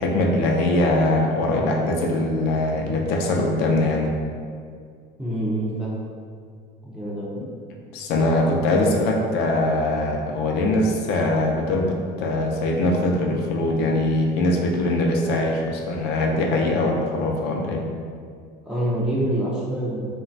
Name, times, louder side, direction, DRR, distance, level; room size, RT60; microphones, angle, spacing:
voice 1, 0.0-4.1 7.9-17.8, left 2 dB, 65° left, 0 dB, 0.4 m, -22 dB
voice 2, 5.2-6.1 6.8-7.4 18.6-20.1, right 1 dB, 5° right, -7 dB, 0.3 m, -26 dB
2.9 x 2.2 x 2.5 m, 2.2 s
cardioid pair, 165°, 18 cm